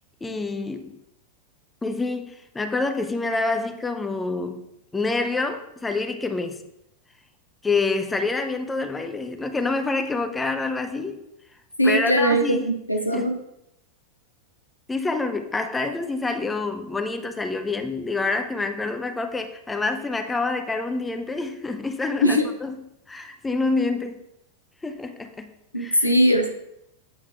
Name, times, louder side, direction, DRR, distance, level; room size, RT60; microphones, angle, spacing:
voice 1, 0.2-1.0 1.8-6.6 7.6-11.2 11.8-12.7 13.1-13.4 14.9-22.7 23.1-24.2 24.8-26.1, left 3 dB, 10° left, 0.5 m, -27 dB
voice 2, 11.8-13.4 22.2-22.5 25.7-26.5, equal, 90° left, 0.6 m, -20 dB
8.1 x 3.5 x 3.3 m
figure-of-eight pair, 90°, 0 cm